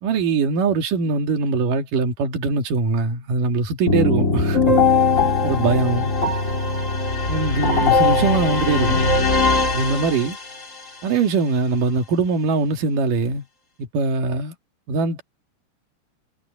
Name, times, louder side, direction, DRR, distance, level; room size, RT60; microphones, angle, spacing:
voice 1, 0.0-4.6 5.4-6.1 7.3-9.1 9.7-10.4 11.0-13.4 13.9-14.5 14.9-15.2, right 4 dB, 50° right, 3.2 m, -22 dB
sound 1, 3.9-10.6, left 3 dB, 85° left, 0.7 m, -20 dB
omnidirectional pair, 5.8 m